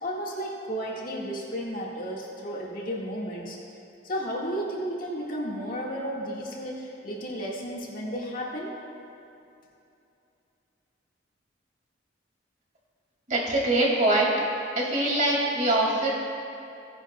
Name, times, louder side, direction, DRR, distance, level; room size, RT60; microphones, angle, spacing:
voice 1, 0.0-3.6 4.0-8.7, equal, 50° left, -3 dB, 1.6 m, -33 dB
voice 2, 13.3-14.5 14.8-16.1, right 1 dB, 45° right, -3 dB, 2.2 m, -23 dB
17.0 x 10.0 x 2.2 m, 2.7 s
head